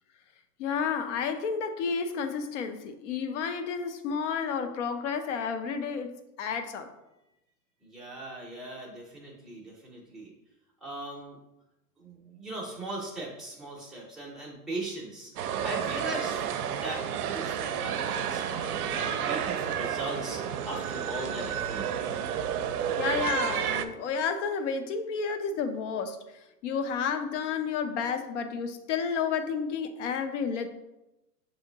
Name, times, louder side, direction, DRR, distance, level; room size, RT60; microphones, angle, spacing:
voice 1, 0.6-6.9 23.0-30.7, left 6 dB, 50° left, 7 dB, 0.6 m, -31 dB
voice 2, 7.8-10.3 10.8-11.4 12.0-16.4 16.8-17.1 17.3-21.9, right 2 dB, ahead, -5 dB, 0.6 m, -39 dB
sound 1, 15.4-23.9, right 8 dB, 65° right, 0.6 m, -31 dB
6.8 x 2.8 x 2.7 m, 0.94 s
hypercardioid pair, 140°, 48 cm